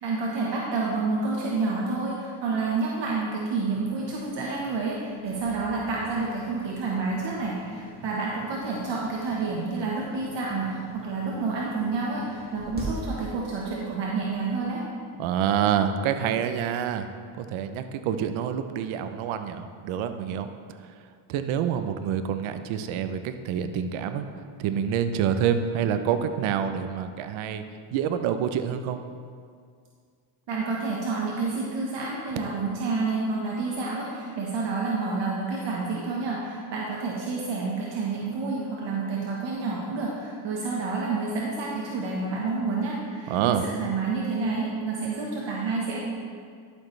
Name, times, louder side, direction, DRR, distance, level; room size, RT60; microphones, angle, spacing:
voice 1, 0.0-14.8 30.5-46.0, right 3 dB, 60° right, -3 dB, 1.3 m, -29 dB
sound 1, 3.6-14.6, right 1 dB, 20° right, 2.2 m, -44 dB
voice 2, 15.2-17.1 17.4-20.5 21.3-24.3 24.6-27.6 27.9-29.0 43.3-43.6, right 8 dB, 75° right, 9 dB, 0.7 m, -27 dB
11.5 x 6.5 x 3.2 m, 2.1 s
cardioid pair, 85°, 48 cm